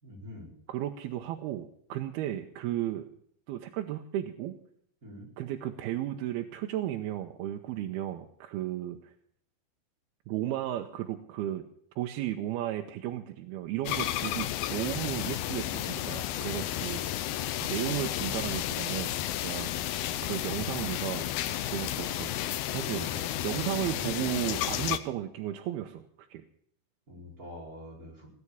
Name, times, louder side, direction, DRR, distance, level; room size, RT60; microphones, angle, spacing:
voice 1, 0.0-0.5 5.0-5.3 22.9-23.3 27.1-28.3, left 1 dB, 20° right, -2 dB, 4.9 m, -45 dB
voice 2, 0.7-3.1 3.5-4.6 5.4-9.1 10.3-11.6 12.0-17.2 17.6-21.3 21.7-22.3 22.7-26.0 26.3-26.4, right 13 dB, 90° right, 4 dB, 2.8 m, -34 dB
sound 1, 13.8-25.0, left 13 dB, 80° left, 2.6 m, -32 dB
18.0 x 9.7 x 7.0 m, 0.66 s
omnidirectional pair, 4.4 m